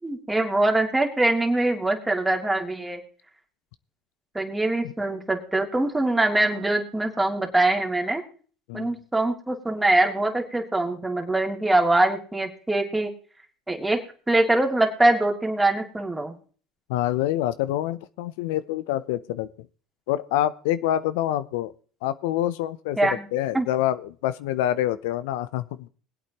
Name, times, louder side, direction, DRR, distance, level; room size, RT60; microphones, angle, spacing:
voice 1, 0.0-3.0 4.3-8.2 8.7-13.1 13.7-16.3 23.0-23.2 23.5-23.7, right 2 dB, 10° right, 2 dB, 2.6 m, -23 dB
voice 2, 8.7-9.0 16.9-19.5 20.1-21.7 22.0-25.9, left 13 dB, 80° left, 14 dB, 0.6 m, -26 dB
22.0 x 8.4 x 3.0 m, 0.42 s
supercardioid pair, 90°, 0 cm